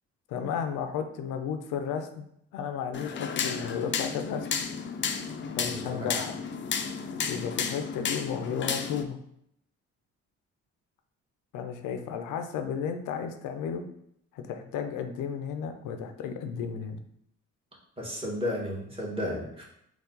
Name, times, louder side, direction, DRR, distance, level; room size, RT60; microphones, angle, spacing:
voice 1, 0.3-4.5 5.6-6.4 7.3-9.2 11.5-13.9 14.3-17.0, left 7 dB, 90° left, 6 dB, 0.6 m, -33 dB
sound 1, 2.9-9.0, left 6 dB, 40° left, 0.5 m, -32 dB
voice 2, 5.6-6.2 18.0-19.7, left 1 dB, 20° right, -4 dB, 1.5 m, -33 dB
4.5 x 2.4 x 3.9 m, 0.72 s
cardioid pair, 90°, 30 cm